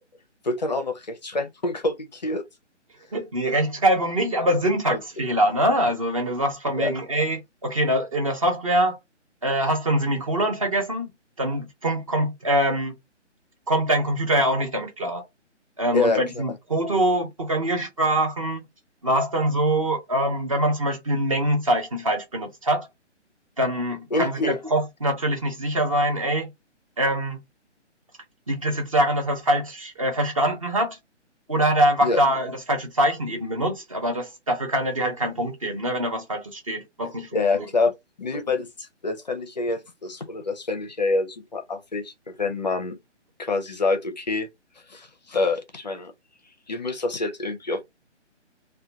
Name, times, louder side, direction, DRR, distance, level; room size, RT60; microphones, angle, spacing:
voice 1, 0.4-2.4 4.9-5.0 6.8-6.9 15.9-16.4 24.1-24.6 32.0-32.2 37.3-37.9 38.2-43.0 43.4-44.5 44.9-46.1 46.7-47.9, left 3 dB, 40° left, 0.4 m, -26 dB
voice 2, 3.1-9.0 9.4-11.1 11.4-12.9 13.7-15.3 15.8-18.6 19.0-22.9 23.6-26.5 27.0-27.4 28.5-31.0 31.5-37.3, right 1 dB, 30° right, 0.6 m, -24 dB
2.3 x 2.2 x 3.8 m
hypercardioid pair, 160°, 36 cm